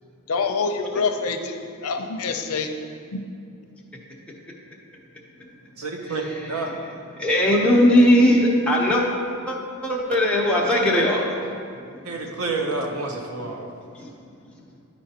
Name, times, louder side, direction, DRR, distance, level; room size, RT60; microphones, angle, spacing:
voice 1, 0.3-1.6 1.8-2.7, left 4 dB, 85° left, 6 dB, 0.6 m, -25 dB
voice 2, 5.8-6.7 12.0-13.7, right 3 dB, 80° right, 1 dB, 0.9 m, -29 dB
voice 3, 7.2-9.0 9.5-9.6 9.8-11.3 13.9-14.1, left 1 dB, 5° left, -4 dB, 0.9 m, -18 dB
11.0 x 4.4 x 2.9 m, 2.4 s
head